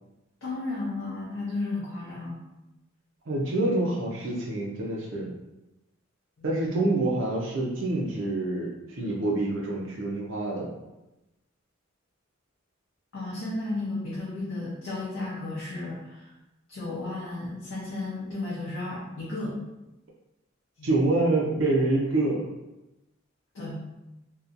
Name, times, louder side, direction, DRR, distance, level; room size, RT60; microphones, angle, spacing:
voice 1, 0.4-2.4 6.4-6.5 13.1-16.3 16.7-19.6 20.8-20.9 23.5-23.8, left 2 dB, 90° left, -7 dB, 0.6 m, -33 dB
voice 2, 3.3-5.3 6.4-10.7 20.8-22.5, right 2 dB, 70° right, -2 dB, 0.5 m, -26 dB
2.7 x 2.2 x 2.5 m, 0.96 s
head